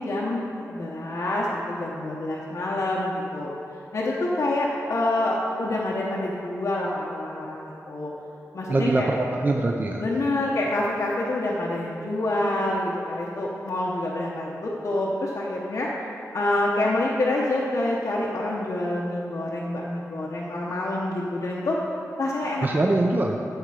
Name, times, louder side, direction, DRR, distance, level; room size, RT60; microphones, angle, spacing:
voice 1, 0.0-3.5 3.9-8.1 8.5-9.1 10.0-15.9 16.3-21.8 22.2-22.7, left 1 dB, 60° left, -5 dB, 1.0 m, -27 dB
voice 2, 8.7-10.0 22.6-23.4, right 2 dB, 30° right, 1 dB, 0.5 m, -23 dB
12.5 x 6.9 x 4.9 m, 2.9 s
wide cardioid pair, 145°, 6 cm